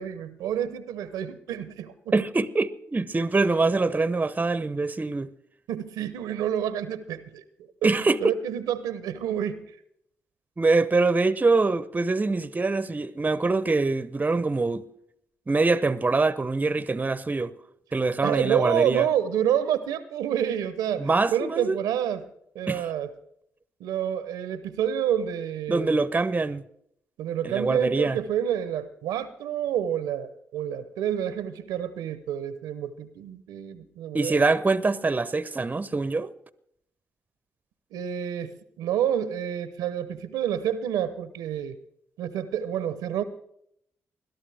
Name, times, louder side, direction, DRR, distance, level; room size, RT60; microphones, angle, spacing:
voice 1, 0.0-1.9 5.7-9.7 18.2-22.3 22.5-23.1 23.8-26.0 27.2-34.5 37.9-41.8 42.2-43.2, right 9 dB, 85° right, 0.7 m, -29 dB
voice 2, 2.1-5.3 7.8-8.2 10.6-14.9 15.5-17.6 17.9-19.1 21.0-21.8 22.7-22.8 25.7-26.6 27.4-28.2 34.1-36.3, right 3 dB, 25° right, 0.7 m, -24 dB
21.0 x 12.0 x 3.4 m
supercardioid pair, 50°, 6 cm